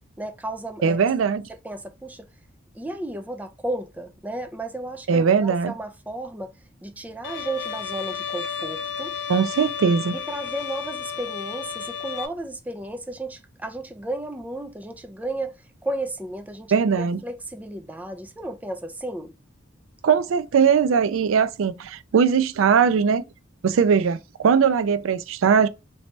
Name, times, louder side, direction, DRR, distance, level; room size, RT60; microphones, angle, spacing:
voice 1, 0.2-1.0 1.5-2.3 2.7-9.2 10.1-19.3, right 1 dB, 10° right, 0.4 m, -33 dB
voice 2, 0.8-1.4 5.1-5.7 9.3-10.2 16.7-17.2 20.0-23.2 23.6-25.7, right 6 dB, 75° right, 0.4 m, -20 dB
Bowed string instrument, 7.2-12.3, left 7 dB, 55° left, 0.5 m, -32 dB
3.0 x 2.7 x 3.3 m
head